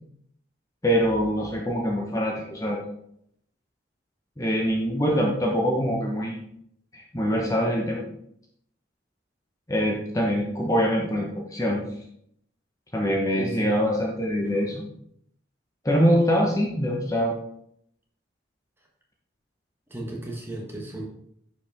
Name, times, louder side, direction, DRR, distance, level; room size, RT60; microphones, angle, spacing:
voice 1, 0.8-2.8 4.4-6.4 6.9-8.0 9.7-11.8 12.9-14.8 15.8-17.3, equal, 20° left, -1 dB, 1.0 m, -24 dB
voice 2, 13.3-13.7 14.4-14.9 19.9-21.0, right 1 dB, 15° right, -1 dB, 1.4 m, -35 dB
9.9 x 5.2 x 3.6 m, 0.70 s
head